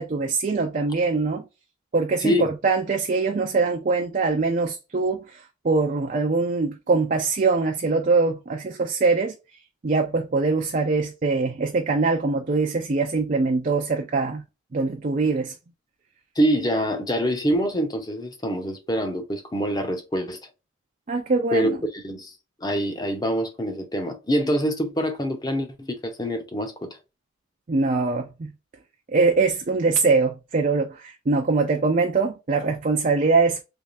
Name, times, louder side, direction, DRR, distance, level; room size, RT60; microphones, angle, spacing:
voice 1, 0.0-1.4 1.9-9.3 9.8-14.4 14.7-15.5 21.1-21.8 27.7-28.5 29.1-33.6, right 4 dB, 40° right, 0.4 m, -23 dB
voice 2, 2.2-2.5 16.4-20.4 21.5-22.3 22.6-26.9, equal, 20° left, 0.7 m, -25 dB
3.4 x 3.1 x 2.5 m
head